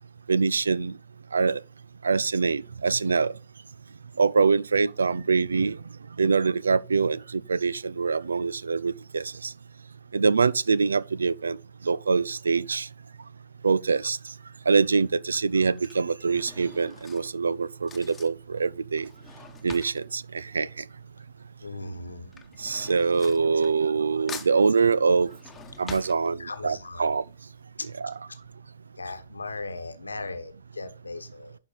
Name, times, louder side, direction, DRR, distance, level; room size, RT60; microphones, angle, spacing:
voice 1, 0.3-0.9 1.3-1.6 2.0-3.3 4.2-5.8 6.2-9.5 10.1-11.6 11.9-12.9 13.6-14.2 14.7-19.1 19.6-20.7 22.6-25.3 25.8-27.2 28.0-28.1, right 4 dB, 75° right, 0.5 m, -24 dB
Drawer open or close / Cutlery silverware, 14.3-14.7 15.5-21.4 21.7-24.0 24.3-26.8 27.2-27.3 27.5-27.6, left 5 dB, 15° left, 1.1 m, -46 dB
voice 2, 21.6-22.3 26.4-27.1 29.0-31.6, left 3 dB, 80° left, 1.2 m, -37 dB
11.5 x 4.8 x 4.1 m
figure-of-eight pair, 115°, 0 cm